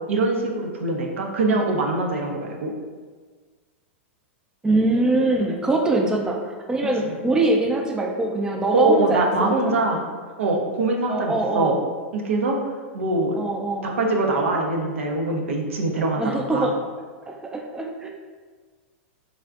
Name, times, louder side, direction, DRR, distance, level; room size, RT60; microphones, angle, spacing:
voice 1, 0.1-2.7 7.0-7.1 8.7-10.0 10.4-11.8 12.1-13.4 13.8-16.7, right 2 dB, 85° right, 1 dB, 0.5 m, -23 dB
voice 2, 4.6-9.6 11.1-11.8 13.3-13.9 16.2-16.7 17.2-18.1, right 2 dB, 10° right, 1 dB, 0.3 m, -23 dB
3.4 x 2.4 x 2.3 m, 1.4 s
hypercardioid pair, 115°, 7 cm